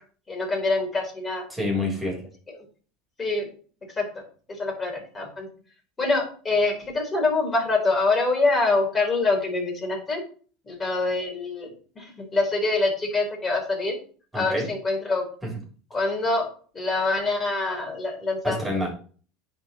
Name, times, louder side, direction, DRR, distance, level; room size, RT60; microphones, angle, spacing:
voice 1, 0.3-1.4 3.2-3.4 4.0-4.1 4.6-5.5 6.0-10.2 10.7-12.0 12.3-14.0 14.3-15.2 15.9-16.5 16.7-18.6, left 3 dB, 25° left, 0 dB, 3.6 m, -25 dB
voice 2, 1.5-2.2 14.3-14.7 15.4-15.5 18.4-18.9, left 1 dB, 10° right, -2 dB, 3.9 m, -27 dB
10.0 x 4.6 x 3.0 m, 0.41 s
supercardioid pair, 100°, 0 cm